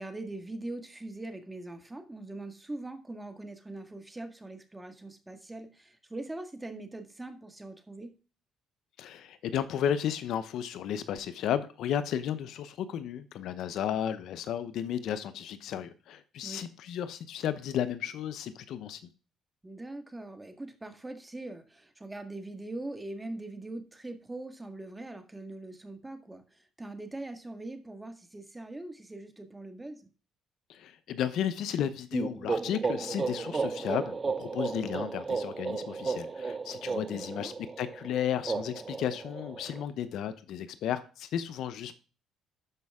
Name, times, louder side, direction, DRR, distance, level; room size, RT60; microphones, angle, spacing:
voice 1, 0.0-8.1 16.4-16.6 19.6-30.1 37.0-37.5, right 2 dB, 15° right, 1.8 m, -42 dB
voice 2, 9.0-19.0 30.7-42.0, left 9 dB, 70° left, 0.8 m, -33 dB
sound 1, 32.1-39.8, right 4 dB, 30° right, 0.5 m, -34 dB
12.5 x 5.3 x 3.6 m
supercardioid pair, 85°, 0 cm